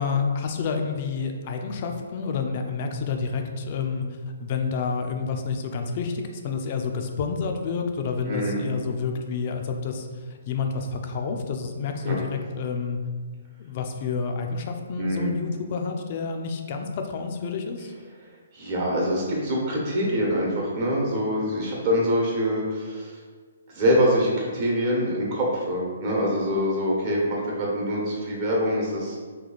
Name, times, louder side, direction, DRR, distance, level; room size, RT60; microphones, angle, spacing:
voice 1, 0.0-4.1 4.4-13.0 13.6-17.9, left 5 dB, 40° left, 4 dB, 0.4 m, -29 dB
voice 2, 8.3-8.6 12.1-12.2 15.0-15.3 18.5-23.2 23.7-29.2, equal, 40° right, -4 dB, 1.1 m, -25 dB
3.1 x 2.3 x 4.0 m, 1.5 s
hypercardioid pair, 145°, 0 cm